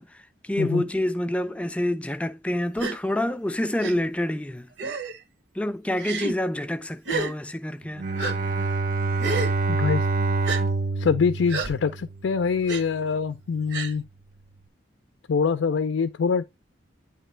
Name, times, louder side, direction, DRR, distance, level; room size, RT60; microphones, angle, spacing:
voice 1, 0.0-4.7 5.5-8.0, left 1 dB, 5° left, 0.3 m, -27 dB
Gasp, 2.8-3.0 3.8-3.9 4.8-5.2 6.0-6.3 7.0-7.3 8.2-8.3 9.2-9.5 10.4-10.6 11.5-11.7 12.7-12.8 13.7-13.9, right 3 dB, 70° right, 0.9 m, -29 dB
Bowed string instrument, 8.0-12.3, right 3 dB, 45° right, 0.5 m, -26 dB
voice 2, 9.7-10.1 11.0-14.1 15.3-16.4, left 5 dB, 85° left, 0.4 m, -24 dB
9.2 x 3.1 x 3.2 m
head